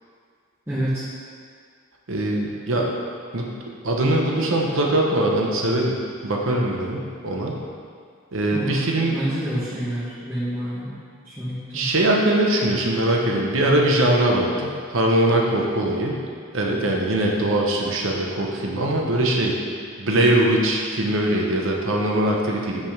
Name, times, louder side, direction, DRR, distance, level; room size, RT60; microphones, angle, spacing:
voice 1, 0.7-1.0 8.5-10.9 11.2-11.9, right 1 dB, 10° right, -12 dB, 0.9 m, -28 dB
voice 2, 2.1-2.9 3.3-3.5 3.8-6.0 6.2-7.5 8.3-9.2 11.7-16.2 16.5-19.6 20.0-22.9, right 1 dB, 70° right, -1 dB, 0.8 m, -21 dB
5.4 x 3.5 x 5.8 m, 2.1 s
head